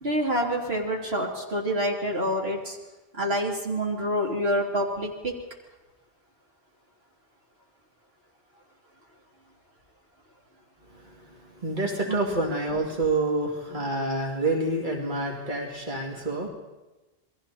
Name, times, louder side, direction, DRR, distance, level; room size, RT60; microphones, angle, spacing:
voice 1, 0.0-2.8 3.2-5.1 12.1-12.2, equal, 80° right, -1 dB, 3.5 m, -27 dB
voice 2, 11.6-16.5, right 2 dB, 50° right, -1 dB, 2.9 m, -27 dB
28.5 x 21.5 x 4.3 m, 1.1 s
omnidirectional pair, 1.0 m